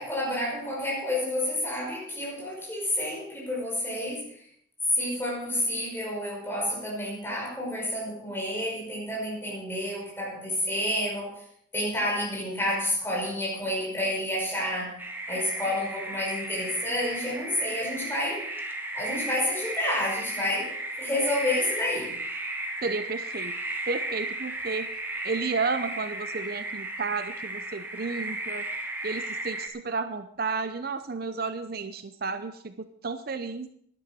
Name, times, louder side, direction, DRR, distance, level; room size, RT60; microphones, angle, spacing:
voice 1, 0.0-4.4 4.9-11.3 11.7-14.9 15.3-18.4 18.9-20.7 21.0-22.1, left 1 dB, 10° left, -4 dB, 5.5 m, -29 dB
sound 1, 15.0-29.7, right 2 dB, 10° right, 1.3 m, -35 dB
voice 2, 22.8-23.6 23.9-24.9 25.2-28.7 29.0-33.7, right 4 dB, 50° right, 10 dB, 0.7 m, -32 dB
11.5 x 11.0 x 6.1 m, 0.67 s
head